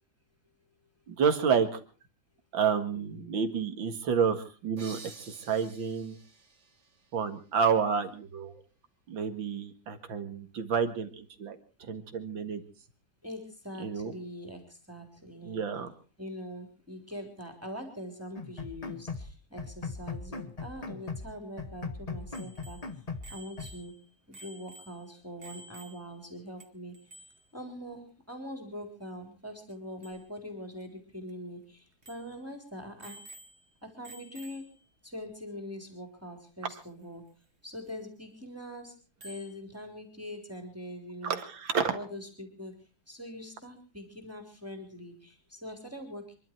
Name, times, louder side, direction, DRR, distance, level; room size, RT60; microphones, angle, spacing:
voice 1, 1.1-1.8 2.5-6.2 7.1-8.6 9.1-12.6 13.8-14.1 15.4-15.9 41.2-42.0, right 6 dB, 90° right, 8 dB, 2.5 m, -30 dB
sound 1, 4.8-8.2, right 4 dB, 60° right, 3.0 m, -52 dB
voice 2, 13.2-15.6 16.2-22.8 23.3-23.9 24.3-33.2 33.8-34.7 35.0-37.2 37.6-39.0 39.2-41.4 41.9-42.7 43.1-46.4, equal, 5° right, 4 dB, 3.5 m, -43 dB
sound 2, 18.4-19.3 19.6-21.3 21.6-23.3 23.6-23.8, left 4 dB, 25° left, 1.2 m, -39 dB
Bicycle bell, 22.3-26.3 26.6-26.7 26.9-27.5 29.7-29.8 30.0-30.2 30.8-30.9 31.3-31.4 32.0-32.4 33.0-33.7 34.0-34.8 36.7-36.8 39.2-39.6, right 1 dB, 30° right, 2.4 m, -51 dB
26.5 x 12.0 x 4.5 m, 0.37 s
omnidirectional pair, 2.1 m